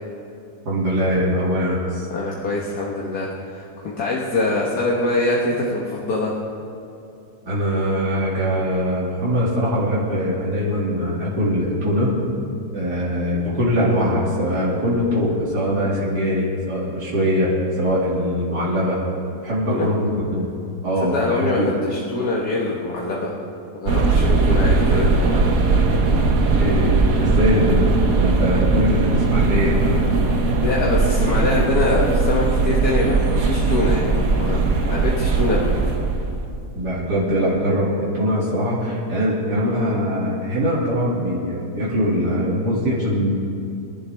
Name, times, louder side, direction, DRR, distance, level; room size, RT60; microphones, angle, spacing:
voice 1, 0.7-2.0 7.4-12.2 12.7-19.0 19.4-20.5 20.8-21.7 25.9-26.2 26.6-30.1 36.7-43.3, equal, 85° right, -7 dB, 3.0 m, -22 dB
voice 2, 2.1-6.4 19.7-19.9 21.0-23.3 23.8-25.4 30.6-35.7, left 2 dB, 70° left, -4 dB, 1.8 m, -24 dB
sound 1, 23.9-36.5, right 3 dB, 60° right, 1.5 m, -19 dB
24.5 x 11.5 x 3.4 m, 2.7 s
omnidirectional pair, 1.7 m